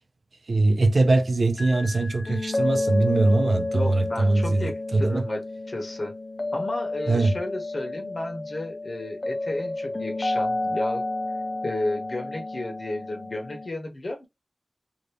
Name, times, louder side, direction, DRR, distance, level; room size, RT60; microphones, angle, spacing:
voice 1, 0.5-5.3 7.1-7.4, right 2 dB, 80° right, 0.6 m, -22 dB
sound 1, 1.6-13.7, left 2 dB, 45° left, 0.5 m, -30 dB
voice 2, 3.7-6.1 6.5-11.0 11.6-14.3, left 1 dB, 60° left, 1.2 m, -33 dB
3.0 x 2.6 x 3.2 m
wide cardioid pair, 70°, 0 cm